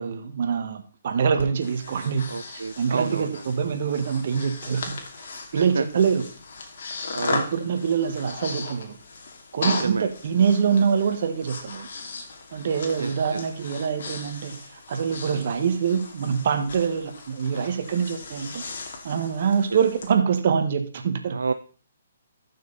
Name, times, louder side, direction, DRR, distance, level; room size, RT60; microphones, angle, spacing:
voice 1, 0.0-6.2 7.3-9.0 9.5-11.9 12.5-18.6 19.0-21.4, right 6 dB, 55° right, 7 dB, 1.8 m, -25 dB
Breathing, 1.4-20.1, left 4 dB, 60° left, 2.6 m, -37 dB
voice 2, 2.3-3.4 5.6-5.8 7.1-7.4 9.6-10.1 13.0-13.4 19.7-19.8 21.3-21.5, right 4 dB, 75° right, 12 dB, 0.5 m, -29 dB
14.0 x 6.3 x 4.2 m, 0.42 s
figure-of-eight pair, 135°, 0 cm